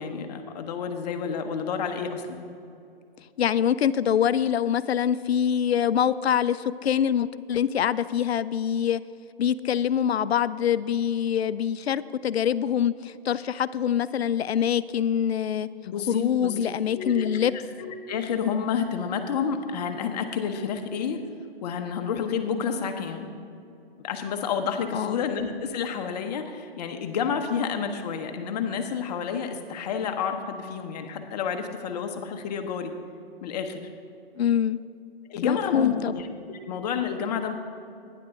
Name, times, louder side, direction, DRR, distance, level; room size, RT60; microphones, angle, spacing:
voice 1, 0.0-2.4 15.8-21.2 21.6-23.3 24.0-32.9 33.4-33.8 35.3-37.5, left 6 dB, 40° left, 6 dB, 1.0 m, -30 dB
voice 2, 3.4-9.0 9.4-15.7 16.1-17.5 24.9-25.2 34.4-34.8 35.4-36.1, left 9 dB, 85° left, 16 dB, 0.5 m, -24 dB
11.5 x 10.0 x 3.7 m, 2.6 s
hypercardioid pair, 140°, 31 cm